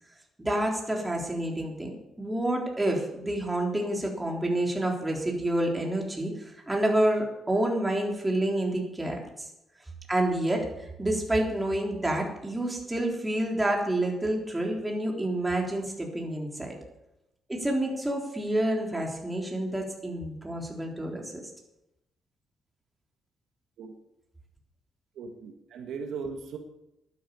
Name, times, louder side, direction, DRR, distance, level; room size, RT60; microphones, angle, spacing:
voice 1, 0.4-9.5 10.1-16.7 17.5-21.4, right 1 dB, 15° right, 0 dB, 3.7 m, -28 dB
voice 2, 25.1-26.6, right 5 dB, 85° right, 4 dB, 1.6 m, -38 dB
11.5 x 10.0 x 7.0 m, 0.87 s
cardioid pair, 85°, 0 cm